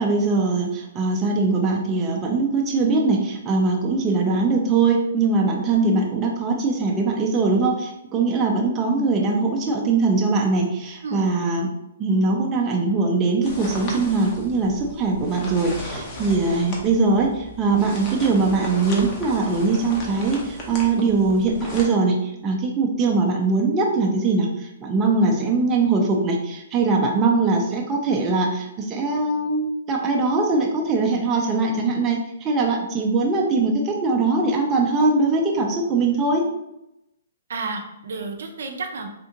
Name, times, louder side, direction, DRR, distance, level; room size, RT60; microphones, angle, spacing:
voice 1, 0.0-11.7 12.0-36.4, right 3 dB, 20° right, 0 dB, 0.5 m, -21 dB
sound 1, 13.4-21.8, left 1 dB, 30° left, 0.7 m, -36 dB
voice 2, 37.5-39.1, right 3 dB, 70° right, 4 dB, 0.5 m, -31 dB
3.6 x 2.4 x 2.8 m, 0.86 s
hypercardioid pair, 150°, 0 cm